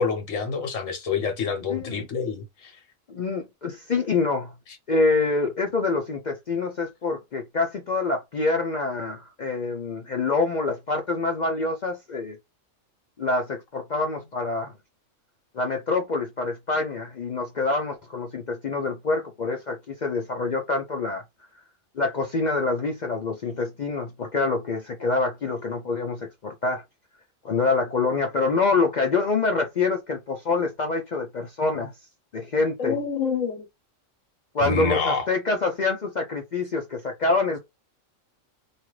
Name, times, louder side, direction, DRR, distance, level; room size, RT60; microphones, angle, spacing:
voice 1, 0.0-2.8 32.8-33.6 34.6-35.3, left 5 dB, 75° left, 1.3 m, -27 dB
voice 2, 1.7-2.0 3.1-4.5 4.9-12.4 13.2-14.7 15.5-21.2 22.0-26.8 27.4-31.9 32.3-33.0 34.5-37.6, left 3 dB, 60° left, 0.4 m, -26 dB
2.7 x 2.4 x 3.1 m
omnidirectional pair, 1.4 m